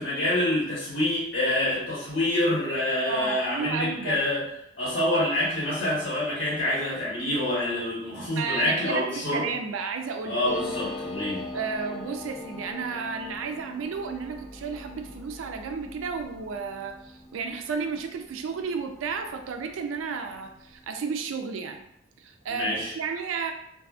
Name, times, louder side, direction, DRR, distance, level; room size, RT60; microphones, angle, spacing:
voice 1, 0.0-4.4 4.8-9.5 10.2-11.4 22.5-22.9, left 1 dB, 70° left, -7 dB, 1.5 m, -26 dB
voice 2, 3.0-4.2 8.4-10.4 11.5-21.8 22.2-23.5, right 5 dB, 90° right, 5 dB, 0.3 m, -33 dB
sound 1, 10.5-19.6 19.9-20.0 20.2-20.8, left 2 dB, 35° left, 0.4 m, -40 dB
2.6 x 2.4 x 2.3 m, 0.80 s
head